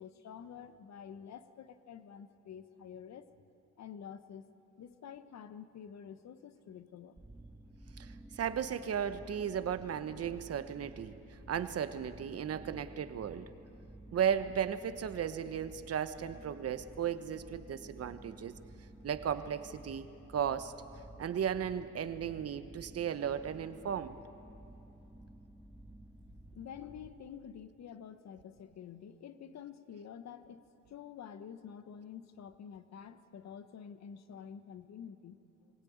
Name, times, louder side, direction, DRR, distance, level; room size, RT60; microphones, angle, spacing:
voice 1, 0.0-3.3 3.8-4.5 4.8-7.2 26.5-35.4, left 8 dB, 60° left, 11 dB, 1.2 m, -49 dB
sound 1, 7.2-27.1, right 1 dB, 5° right, 1.5 m, -53 dB
voice 2, 8.0-13.5 14.1-18.5 19.0-20.7 21.2-24.2, right 8 dB, 55° right, 11 dB, 1.1 m, -35 dB
22.5 x 17.0 x 9.5 m, 3.0 s
cardioid pair, 90°, 30 cm